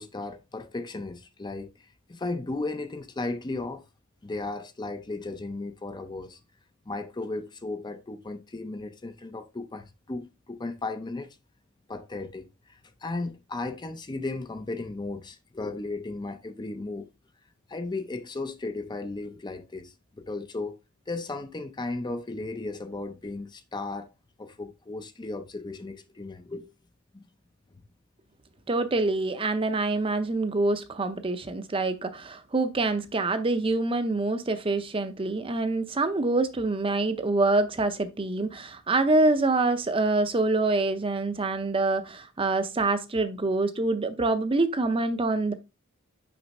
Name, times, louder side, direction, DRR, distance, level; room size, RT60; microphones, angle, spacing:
voice 1, 0.0-3.8 4.2-6.4 6.9-11.3 11.9-17.1 17.7-20.8 21.1-24.1 24.4-26.7 27.1-27.2, left 2 dB, 20° left, 0.5 m, -35 dB
voice 2, 28.7-45.5, right 2 dB, 25° right, 0.6 m, -26 dB
6.0 x 3.2 x 5.3 m
head